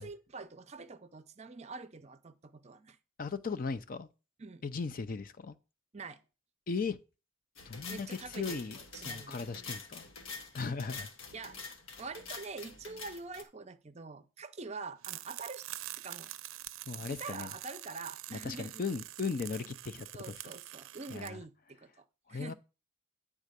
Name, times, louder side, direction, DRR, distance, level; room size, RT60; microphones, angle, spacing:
voice 1, 0.0-3.0 4.4-4.6 5.9-6.2 7.9-8.6 8.9-9.4 11.3-15.7 16.0-16.3 17.1-18.8 20.1-22.5, right 4 dB, 35° right, 0.5 m, -45 dB
voice 2, 3.2-4.1 4.6-5.6 6.7-7.0 7.7-10.0 10.5-11.1 16.9-17.5 18.3-20.4 21.1-21.4 22.3-22.5, left 4 dB, 45° left, 0.5 m, -37 dB
sound 1, 7.6-13.4, left 4 dB, 90° left, 1.2 m, -46 dB
sound 2, 15.0-21.3, right 15 dB, 85° right, 0.5 m, -45 dB
9.4 x 3.6 x 6.7 m
head